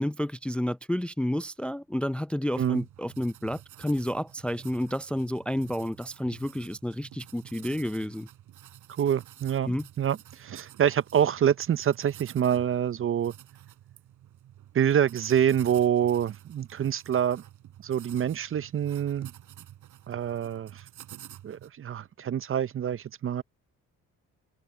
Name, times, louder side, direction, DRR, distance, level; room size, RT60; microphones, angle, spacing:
voice 1, 0.0-8.3 9.7-9.9, left 1 dB, 5° left, 0.4 m, -30 dB
sound 1, 2.5-21.7, right 12 dB, 80° right, 4.6 m, -50 dB
voice 2, 8.9-13.3 14.7-17.4 17.8-19.3 20.1-20.8 21.4-23.4, right 9 dB, 45° right, 0.7 m, -26 dB
cardioid pair, 90°, 30 cm